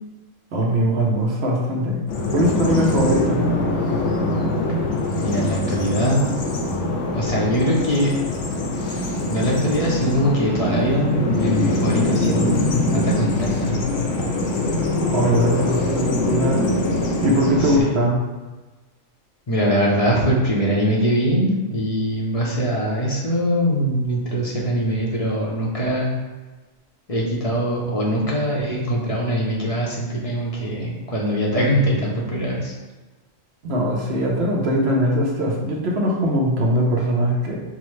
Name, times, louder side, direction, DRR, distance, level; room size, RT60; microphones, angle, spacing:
voice 1, 0.5-2.0 2.3-3.4 15.1-16.7 17.2-18.3 33.6-37.6, equal, 60° right, -2 dB, 0.9 m, -21 dB
Bird vocalization bird call bird song, 2.1-17.8, left 2 dB, 80° left, 1.1 m, -23 dB
voice 2, 5.2-6.4 7.1-8.2 9.3-13.8 17.6-18.0 19.5-26.1 27.1-32.7, equal, 35° left, -4 dB, 0.7 m, -22 dB
6.0 x 2.1 x 3.1 m, 1.2 s
omnidirectional pair, 1.4 m